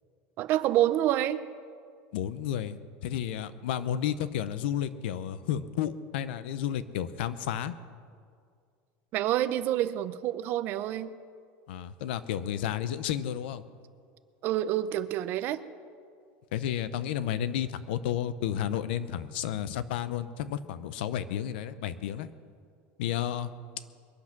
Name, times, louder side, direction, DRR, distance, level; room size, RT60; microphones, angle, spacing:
voice 1, 0.4-1.4 9.1-11.2 14.4-15.6, right 13 dB, 40° right, 14 dB, 0.6 m, -27 dB
voice 2, 2.1-7.7 11.7-13.6 16.5-22.3 23.0-23.5, left 10 dB, 90° left, 14 dB, 0.8 m, -32 dB
22.0 x 8.3 x 6.0 m, 2.2 s
cardioid pair, 170°, 5 cm